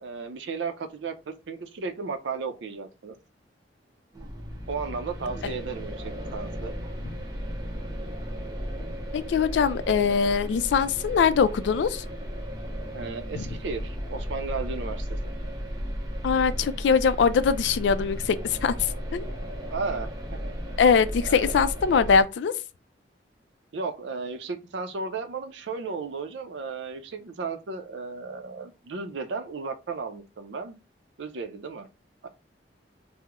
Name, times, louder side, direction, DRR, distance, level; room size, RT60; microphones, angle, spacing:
voice 1, 0.0-3.1 4.7-6.7 12.9-15.2 19.7-20.5 21.2-21.5 23.7-30.8 31.2-31.9 32.2-32.3, right 4 dB, 75° right, 0.5 m, -34 dB
sound 1, 4.1-22.2, equal, 20° right, 0.6 m, -35 dB
voice 2, 9.1-12.0 13.3-13.4 16.2-19.3 20.8-22.5, left 6 dB, 70° left, 0.3 m, -22 dB
2.9 x 2.0 x 3.4 m
head